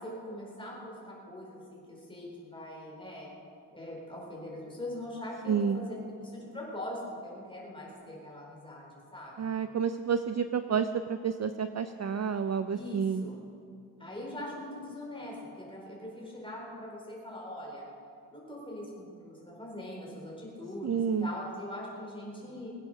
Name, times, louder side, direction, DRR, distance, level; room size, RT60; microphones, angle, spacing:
voice 1, 0.0-3.3 3.7-9.5 12.7-13.4 14.0-17.8 18.3-22.7, left 1 dB, 10° left, -4 dB, 4.1 m, -42 dB
voice 2, 5.5-5.8 9.4-13.3 20.8-21.3, right 6 dB, 40° right, 10 dB, 0.4 m, -30 dB
21.5 x 8.5 x 6.6 m, 2.6 s
wide cardioid pair, 165°, 44 cm